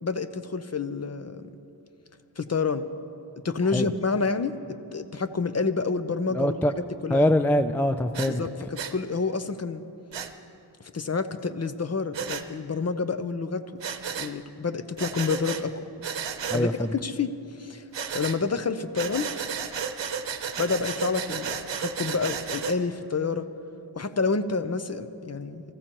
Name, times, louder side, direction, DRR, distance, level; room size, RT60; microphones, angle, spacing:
voice 1, 0.0-1.5 2.4-2.9 3.4-4.5 4.9-7.2 8.3-8.5 8.9-9.8 10.9-13.6 14.2-15.7 16.5-17.3 17.6-17.8 18.1-19.3 20.6-23.5 24.0-25.6, left 4 dB, 35° left, 10 dB, 0.7 m, -28 dB
voice 2, 6.3-6.7 7.1-8.4 16.5-16.9, left 1 dB, 5° left, 10 dB, 0.3 m, -23 dB
Breathing, 8.1-8.3 8.8-8.9 10.1-10.3 12.1-12.4 13.8-14.3 15.0-15.6 16.0-16.6 17.9-18.4 19.0-22.8, right 7 dB, 80° right, 0.8 m, -33 dB
24.5 x 14.5 x 3.0 m, 2.9 s
wide cardioid pair, 70°, 43 cm